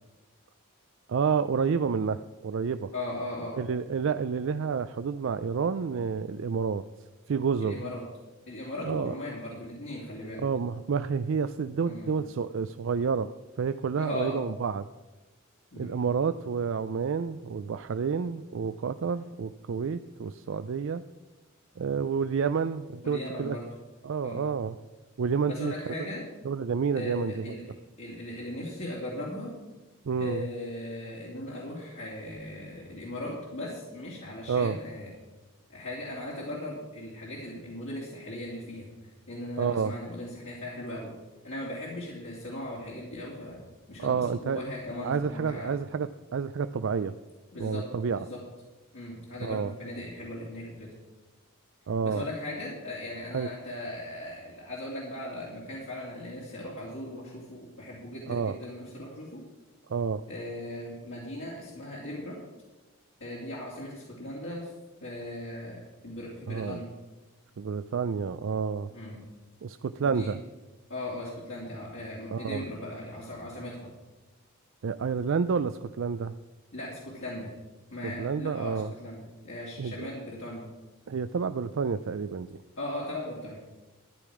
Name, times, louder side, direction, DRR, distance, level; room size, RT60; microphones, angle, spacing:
voice 1, 1.1-2.9 3.5-6.8 7.3-7.8 8.8-9.1 10.4-13.3 13.6-14.9 15.8-21.0 21.8-23.6 24.0-24.7 25.2-25.7 26.4-27.6 30.1-30.5 34.5-34.8 39.6-39.9 44.0-44.6 45.0-47.1 47.6-48.2 49.4-49.7 51.9-52.3 53.3-53.5 58.3-58.6 59.9-60.2 66.5-66.8 67.6-68.9 69.6-70.4 72.3-72.6 74.8-76.3 78.0-78.9 79.8-80.1 81.1-82.6, right 6 dB, 65° right, 11 dB, 0.4 m, -29 dB
voice 2, 2.9-3.6 7.6-8.0 8.5-10.4 11.8-12.1 14.0-14.4 15.7-15.9 23.0-23.6 24.2-24.4 25.5-26.2 26.9-29.5 30.2-35.1 35.7-38.9 39.3-41.1 41.4-43.6 43.9-45.7 47.5-47.8 48.1-48.4 48.9-50.9 52.0-59.4 60.3-62.4 63.2-64.7 65.0-66.9 68.9-69.2 70.0-70.3 70.9-73.9 76.7-77.5 77.9-79.2 79.4-80.7 82.8-83.6, left 1 dB, 60° left, -5 dB, 2.7 m, -38 dB
13.5 x 10.5 x 4.9 m, 1.2 s
head